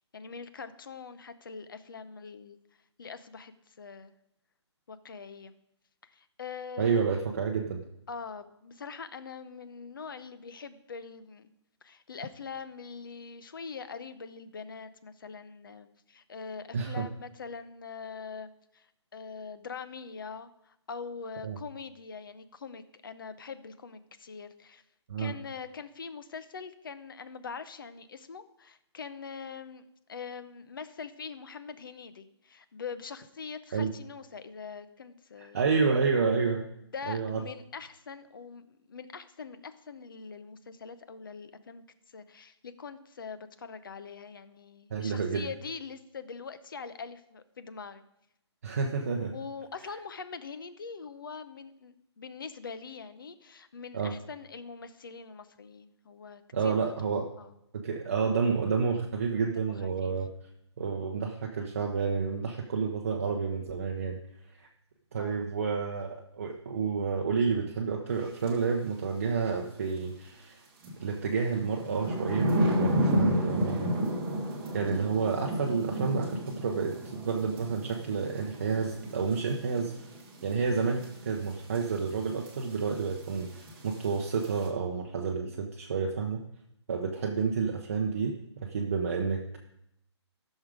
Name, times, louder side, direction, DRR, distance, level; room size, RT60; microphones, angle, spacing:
voice 1, 0.1-2.6 3.0-4.1 4.9-5.5 6.0-7.1 8.1-11.5 11.8-18.5 18.7-18.9 19.1-24.8 25.2-29.8 30.1-35.6 36.8-48.0 49.3-57.5 59.5-60.1 65.2-65.4, left 5 dB, 50° left, 12 dB, 0.8 m, -43 dB
voice 2, 6.8-7.8 16.7-17.0 21.4-21.6 25.1-25.3 33.7-33.9 35.4-36.6 37.1-37.4 44.9-45.5 48.6-49.3 53.9-54.1 56.5-57.3 57.7-60.3 60.8-64.2 64.6-64.7 65.1-70.6 71.0-73.9 74.7-79.9 80.4-86.4 86.9-89.6, right 5 dB, 30° right, 1 dB, 0.7 m, -30 dB
sound 1, 68.4-68.6 70.8-84.7, equal, 10° right, 1.1 m, -32 dB
14.5 x 6.4 x 4.9 m, 0.80 s
hypercardioid pair, 175°, 15 cm